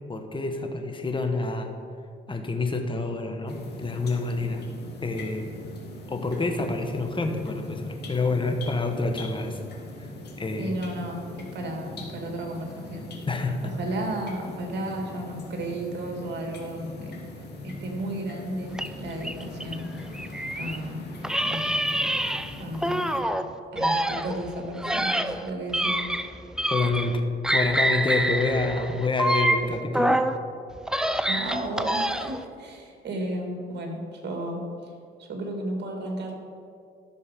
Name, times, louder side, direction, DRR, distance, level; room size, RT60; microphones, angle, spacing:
voice 1, 0.1-1.7 2.3-4.6 5.0-5.5 6.1-9.6 10.0-10.1 10.4-10.8 13.3-13.7 26.7-27.2 27.5-30.2, left 3 dB, 25° left, 4 dB, 1.4 m, -28 dB
sound 1, 3.5-23.2, left 2 dB, 55° left, 2.0 m, -41 dB
voice 2, 10.6-13.1 13.8-17.2 17.6-19.9 20.6-21.1 21.4-21.7 22.6-23.1 23.7-26.1 31.3-34.9 35.2-36.3, right 1 dB, 60° right, 2 dB, 2.3 m, -33 dB
sound 2, 18.7-20.8 21.2-23.4 23.8-27.2 27.4-30.4 30.7-32.4, right 1 dB, 5° right, 0.5 m, -26 dB
13.0 x 6.5 x 5.3 m, 2.3 s
cardioid pair, 90°, 20 cm